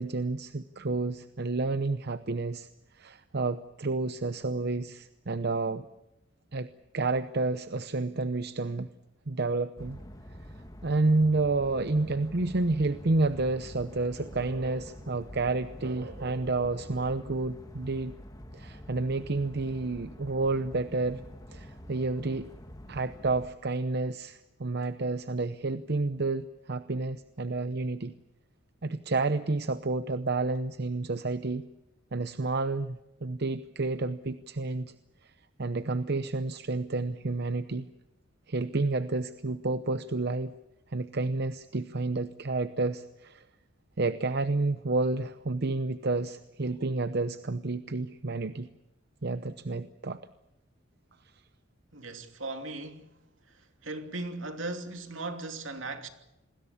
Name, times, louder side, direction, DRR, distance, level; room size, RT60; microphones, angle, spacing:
voice 1, 0.0-2.7 2.9-5.8 6.5-8.9 9.3-10.0 10.8-18.1 18.5-21.2 21.5-22.5 22.9-28.1 28.8-31.6 32.1-34.9 35.2-35.3 35.6-37.9 38.5-40.5 40.9-43.4 44.0-48.7 49.2-50.2, right 3 dB, 55° right, 0.8 m, -30 dB
sound 1, 9.8-23.5, equal, 20° left, 1.9 m, -46 dB
voice 2, 51.9-53.2 53.8-56.1, right 2 dB, 75° right, 2.8 m, -37 dB
27.5 x 20.5 x 7.1 m
head